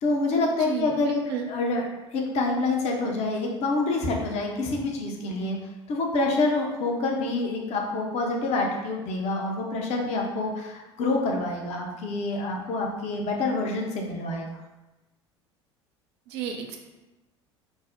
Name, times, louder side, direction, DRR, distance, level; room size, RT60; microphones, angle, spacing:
voice 1, 0.0-1.2 1.5-5.6 5.9-14.4, left 2 dB, 45° left, 1 dB, 0.6 m, -27 dB
voice 2, 0.6-1.5 16.3-16.8, right 7 dB, 65° right, 3 dB, 0.5 m, -32 dB
2.5 x 2.0 x 3.4 m, 1.1 s
figure-of-eight pair, 65°, 15 cm